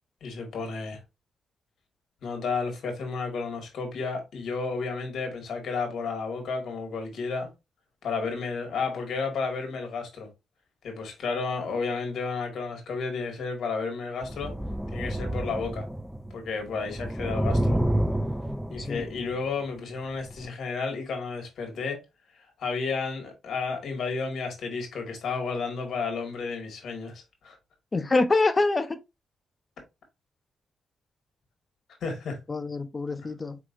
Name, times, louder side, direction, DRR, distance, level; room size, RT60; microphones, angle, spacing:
voice 1, 0.2-1.0 2.2-7.5 8.0-10.3 10.8-14.5 14.9-15.8 16.3-17.8 18.7-22.0 22.6-27.6 32.0-32.4 33.2-33.3, left 4 dB, 70° left, 1.8 m, -32 dB
sound 1, 14.2-16.4 16.7-19.4 20.3-20.5, right 1 dB, ahead, 0.4 m, -29 dB
voice 2, 27.9-29.0 32.5-33.6, left 3 dB, 30° left, 0.8 m, -25 dB
4.6 x 3.8 x 2.5 m
cardioid pair, 80°, 0 cm